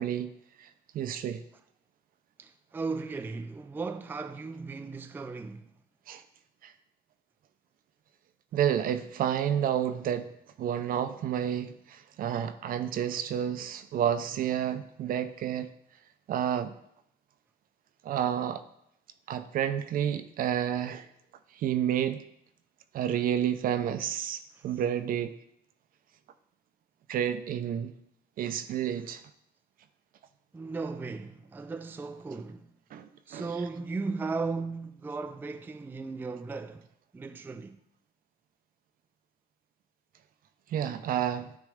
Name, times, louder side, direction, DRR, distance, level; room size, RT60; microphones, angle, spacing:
voice 1, 0.0-1.4 6.1-6.2 6.6-6.7 8.5-15.7 16.3-16.7 18.0-18.6 19.3-21.1 21.5-22.2 22.9-25.4 27.1-27.9 28.4-29.2 32.9-33.5 40.7-41.5, right 9 dB, 55° right, 0.6 m, -30 dB
voice 2, 2.4-5.7 24.5-24.7 30.5-32.7 33.3-36.9 37.1-37.8, right 4 dB, 10° right, 0.3 m, -36 dB
9.6 x 3.3 x 5.0 m
cardioid pair, 110°, 17 cm